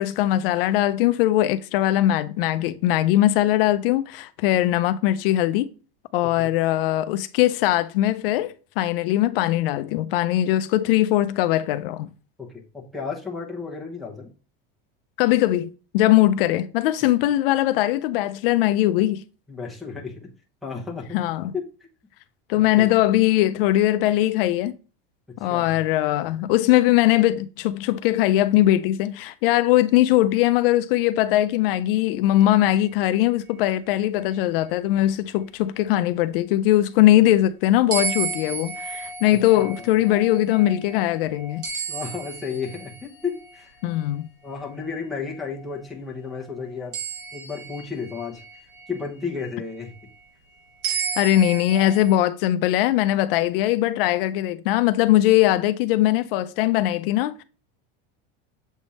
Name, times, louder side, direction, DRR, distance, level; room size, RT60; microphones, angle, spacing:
voice 1, 0.0-5.7 6.1-12.1 15.2-19.2 21.1-21.5 22.5-24.7 25.4-41.6 43.8-44.3 51.2-57.4, left 14 dB, 70° left, 0.5 m, -20 dB
voice 2, 12.4-14.3 19.5-20.3 20.6-21.2 21.5-21.6 22.5-22.9 25.3-25.8 39.5-39.9 41.9-43.8 44.4-47.0 47.3-48.4 48.9-49.9 51.1-51.2, left 5 dB, ahead, 0.9 m, -33 dB
sound 1, 37.9-43.4 46.9-49.0 50.8-52.1, right 6 dB, 70° right, 2.8 m, -32 dB
7.2 x 3.4 x 4.1 m
supercardioid pair, 175°, 30 cm